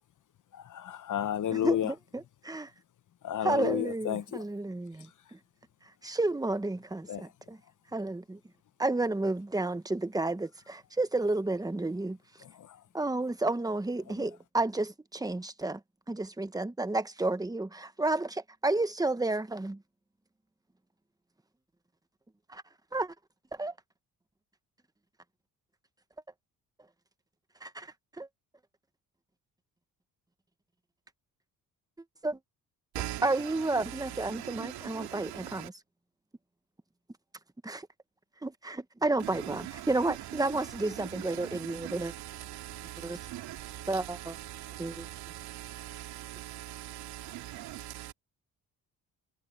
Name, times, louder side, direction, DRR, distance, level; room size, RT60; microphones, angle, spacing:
voice 1, 0.5-1.9 3.2-4.4 7.1-7.3 12.4-12.8 14.2-14.3, left 10 dB, 55° left, 1.0 m, -32 dB
voice 2, 1.5-2.7 3.4-5.1 6.0-7.6 7.9-8.4 8.8-12.2 12.9-15.8 16.1-19.8 22.5-22.6 22.9-23.1 23.6-23.7 27.6-28.3 32.2-32.4 33.2-35.7 37.6-37.9 38.4-42.1 43.0-43.2 43.9-44.3 44.8-45.1, right 2 dB, 10° right, 1.3 m, -31 dB
voice 3, 32.9-35.7 39.2-48.1, right 14 dB, 85° right, 2.9 m, -42 dB
cardioid pair, 75°, 37 cm